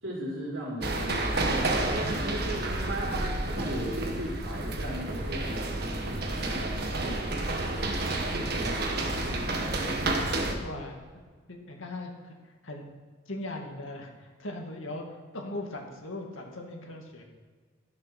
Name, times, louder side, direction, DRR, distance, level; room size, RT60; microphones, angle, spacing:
voice 1, 0.0-2.4 3.5-9.6, equal, 70° right, -11 dB, 4.0 m, -39 dB
sound 1, 0.8-10.5, right 2 dB, 50° right, 1.4 m, -30 dB
voice 2, 10.2-11.0 11.5-12.9 13.3-17.2, left 1 dB, 80° left, 1 dB, 2.1 m, -40 dB
13.0 x 7.8 x 5.9 m, 1.5 s
head